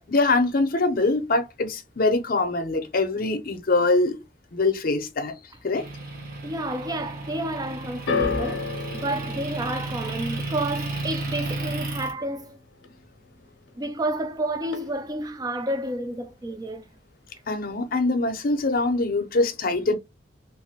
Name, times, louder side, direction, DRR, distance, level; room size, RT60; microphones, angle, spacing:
voice 1, 0.1-4.2 4.5-5.3 5.6-5.8 17.5-19.9, left 2 dB, 50° left, 0.6 m, -23 dB
Motor vehicle (road) / Engine, 5.8-12.1, right 2 dB, 50° right, 0.9 m, -33 dB
voice 2, 6.4-12.6 13.8-16.9, right 1 dB, 20° right, 0.4 m, -30 dB
sound 1, 8.1-14.3 14.6-15.3 16.0-16.1, left 4 dB, 90° left, 0.7 m, -34 dB
2.8 x 2.5 x 2.8 m
head